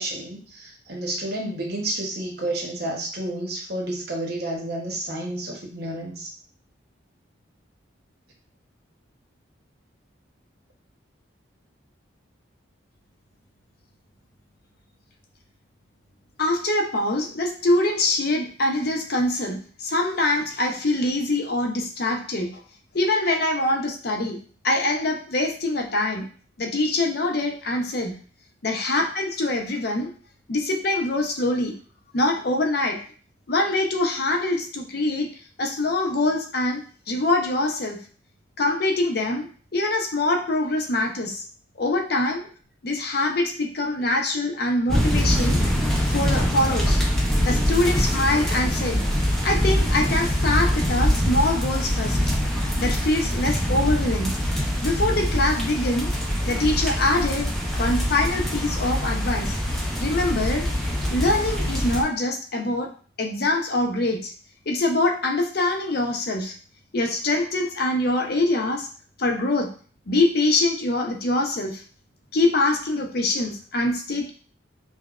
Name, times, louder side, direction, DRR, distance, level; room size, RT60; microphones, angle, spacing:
voice 1, 0.0-6.3, right 1 dB, 50° right, 0 dB, 0.8 m, -30 dB
voice 2, 16.4-22.6 22.9-24.4 24.6-26.2 26.6-28.1 28.6-30.1 30.5-31.7 32.1-33.0 33.5-35.3 35.6-38.0 38.6-41.4 41.8-42.5 42.8-45.6 46.1-47.0 47.4-49.0 49.4-52.2 52.8-54.3 54.8-56.1 56.4-57.5 57.7-59.6 60.0-60.7 61.1-62.9 63.2-64.3 64.7-66.5 66.9-68.9 69.2-69.7 70.1-71.8 72.3-74.3, left 2 dB, 50° left, 2 dB, 0.6 m, -24 dB
sound 1, 44.9-62.0, equal, ahead, 0.5 m, -24 dB
5.6 x 2.1 x 2.4 m, 0.42 s
head